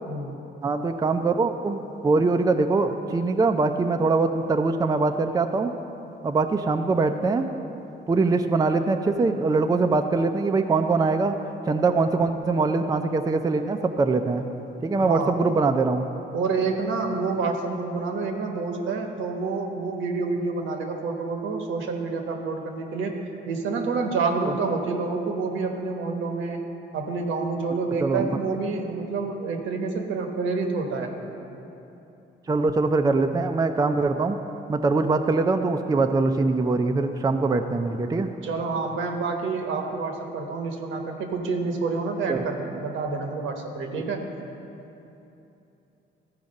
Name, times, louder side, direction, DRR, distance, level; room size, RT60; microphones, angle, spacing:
voice 1, 0.6-5.7 6.2-7.5 8.1-11.4 11.6-14.4 14.8-16.0 28.0-28.4 32.5-34.4 34.7-38.3 42.3-42.4, right 3 dB, 20° right, 6 dB, 0.4 m, -23 dB
voice 2, 14.9-15.4 16.3-23.2 23.5-26.6 26.9-31.1 38.4-44.2, right 4 dB, 80° right, 3 dB, 1.1 m, -28 dB
14.0 x 4.8 x 5.3 m, 2.9 s
cardioid pair, 90°, 20 cm